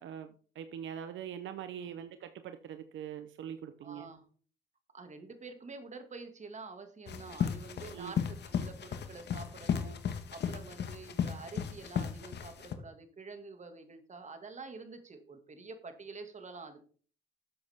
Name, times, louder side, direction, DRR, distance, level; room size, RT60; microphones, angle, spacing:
voice 1, 0.0-4.1 7.9-8.2, right 9 dB, 75° right, 10 dB, 0.9 m, -43 dB
voice 2, 3.8-4.3 4.9-10.0 10.3-16.8, right 4 dB, 35° right, 7 dB, 2.3 m, -47 dB
sound 1, 7.1-12.7, left 8 dB, 60° left, 1.6 m, -35 dB
12.0 x 7.9 x 3.7 m, 0.42 s
cardioid pair, 90°, 20 cm